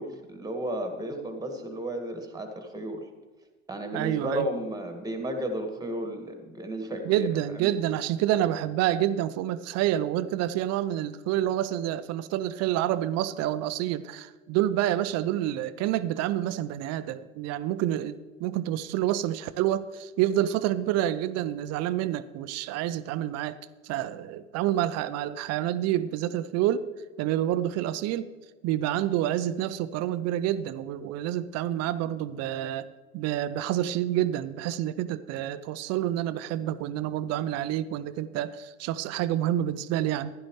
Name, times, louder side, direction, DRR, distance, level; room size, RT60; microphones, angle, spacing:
voice 1, 0.0-3.0 3.7-7.3 7.5-7.8, right 1 dB, 10° right, 5 dB, 2.0 m, -33 dB
voice 2, 3.9-4.5 7.1-23.6 23.8-26.8 27.2-28.3 28.6-32.9 33.1-40.3, right 12 dB, 40° right, 14 dB, 0.6 m, -28 dB
15.0 x 11.5 x 3.2 m, 1.4 s
figure-of-eight pair, 75°, 39 cm